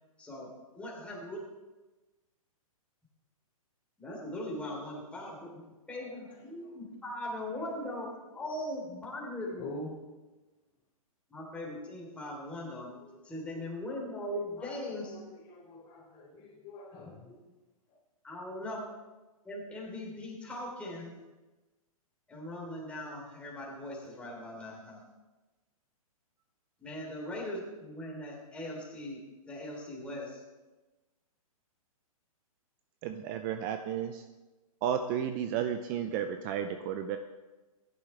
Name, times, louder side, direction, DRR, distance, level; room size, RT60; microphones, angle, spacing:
voice 1, 0.2-1.4 4.0-9.6 11.3-12.9 13.2-15.1 18.2-18.8 19.4-21.2 22.3-25.0 26.8-30.4, left 1 dB, 5° left, -4 dB, 3.3 m, -40 dB
voice 2, 6.1-6.8 7.5-7.7 8.4-8.5 9.6-9.9 12.8-13.2 14.6-17.3, left 2 dB, 30° left, -2 dB, 4.3 m, -47 dB
voice 3, 33.0-34.2 34.8-37.2, right 9 dB, 30° right, 8 dB, 0.6 m, -33 dB
15.5 x 11.0 x 3.3 m, 1.2 s
hypercardioid pair, 135°, 19 cm